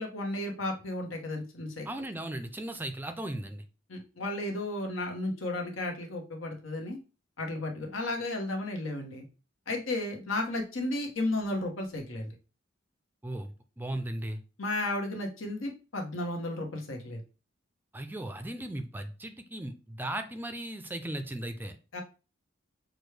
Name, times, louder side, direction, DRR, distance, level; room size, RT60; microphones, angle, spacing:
voice 1, 0.0-1.9 3.9-7.0 7.4-9.2 9.7-12.3 14.6-17.2 21.9-22.0, left 2 dB, 85° left, 2 dB, 1.1 m, -33 dB
voice 2, 1.9-3.6 13.2-14.4 17.9-21.7, right 1 dB, 10° right, 7 dB, 0.4 m, -37 dB
6.1 x 2.2 x 3.2 m, 0.33 s
head